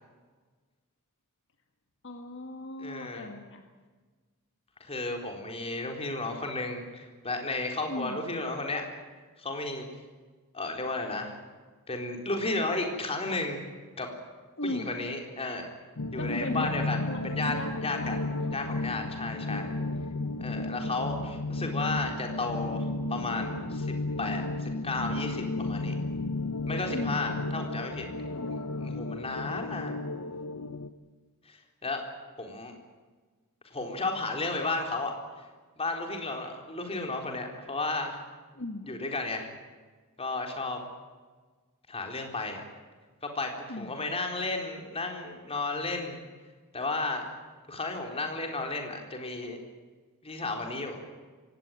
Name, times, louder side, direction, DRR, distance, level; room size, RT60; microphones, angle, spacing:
voice 1, 2.0-3.7 7.9-8.2 14.6-14.9 16.2-18.2 26.9-27.4 28.3-28.7 38.5-38.9 43.7-44.0, left 1 dB, 60° left, 4 dB, 1.8 m, -37 dB
voice 2, 2.8-3.3 4.8-8.8 9.4-9.9 10.5-11.4 11.9-13.6 14.0-14.1 14.6-15.7 16.1-18.2 18.5-19.7 20.4-23.9 24.2-26.0 26.7-28.1 28.5-30.0 31.5-32.0 32.4-32.7 33.7-35.1 35.8-38.2 38.9-39.5 40.2-40.8 41.9-42.6 43.2-43.5 43.8-46.2 46.7-47.3 47.7-49.6 50.2-51.0, left 2 dB, 25° left, 3 dB, 4.1 m, -33 dB
sound 1, 16.0-30.9, left 2 dB, 90° left, 1.1 m, -33 dB
23.0 x 18.0 x 9.0 m, 1.4 s
head